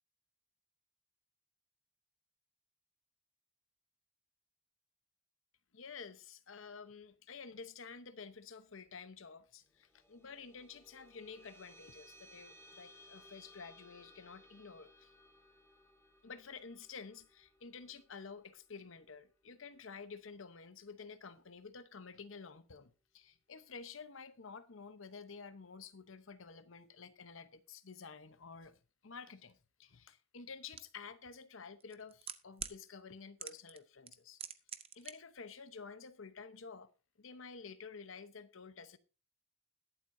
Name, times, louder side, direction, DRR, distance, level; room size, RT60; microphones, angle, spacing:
voice 1, 5.7-15.1 16.2-34.4 34.9-36.9 37.2-39.0, left 5 dB, 70° left, 0.9 m, -51 dB
sound 1, 9.7-20.5, left 1 dB, 10° left, 1.8 m, -62 dB
sound 2, 30.8-30.9 31.8-32.8 33.4-33.8 34.1-35.1 35.4-35.5, right 8 dB, 30° right, 0.7 m, -43 dB
21.0 x 7.8 x 2.7 m
head